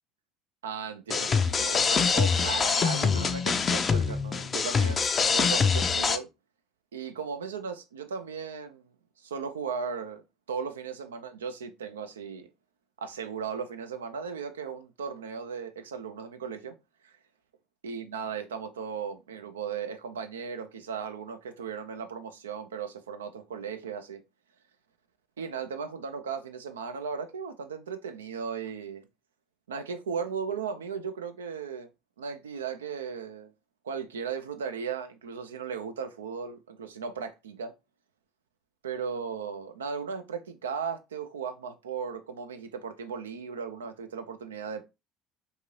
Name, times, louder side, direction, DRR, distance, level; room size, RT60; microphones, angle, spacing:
voice 1, 0.6-6.3 6.9-8.9 9.2-10.2 10.5-12.5 13.0-16.8 17.0-17.1 17.8-24.2 25.4-29.0 29.7-31.9 32.2-33.5 33.8-37.7 38.8-44.8, right 6 dB, 90° right, 0.3 m, -36 dB
sound 1, 1.1-6.2, left 5 dB, 35° left, 0.4 m, -25 dB
2.7 x 2.5 x 3.0 m
hypercardioid pair, 65°, 0 cm